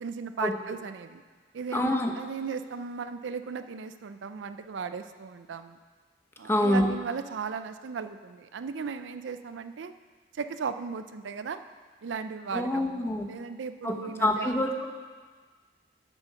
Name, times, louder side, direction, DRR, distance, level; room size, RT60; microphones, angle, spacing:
voice 1, 0.0-1.2 1.5-5.8 6.4-9.9 10.3-11.6 12.0-14.6, right 5 dB, 80° right, 10 dB, 0.4 m, -36 dB
voice 2, 1.7-2.1 6.5-6.9 12.5-13.3 13.8-14.9, left 1 dB, 15° left, 3 dB, 0.8 m, -26 dB
7.7 x 7.1 x 5.8 m, 1.5 s
head